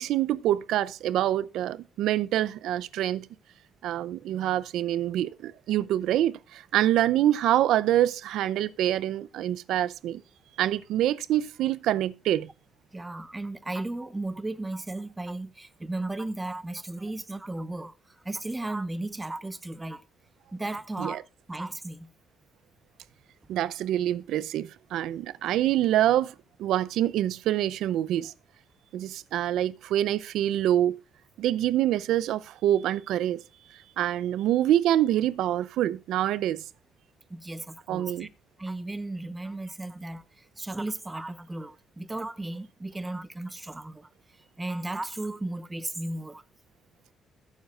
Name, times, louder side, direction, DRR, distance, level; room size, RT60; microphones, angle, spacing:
voice 1, 0.0-3.3 3.8-10.2 10.6-12.5 21.0-21.2 23.5-28.3 28.9-31.0 31.4-33.4 34.0-36.6 37.9-38.3, right 12 dB, 85° right, 0.6 m, -26 dB
voice 2, 12.9-20.0 20.5-21.2 21.5-22.1 37.3-38.3 38.6-44.1 44.6-46.4, right 2 dB, 15° right, 1.1 m, -35 dB
21.5 x 7.4 x 2.4 m
cardioid pair, 90°, 0 cm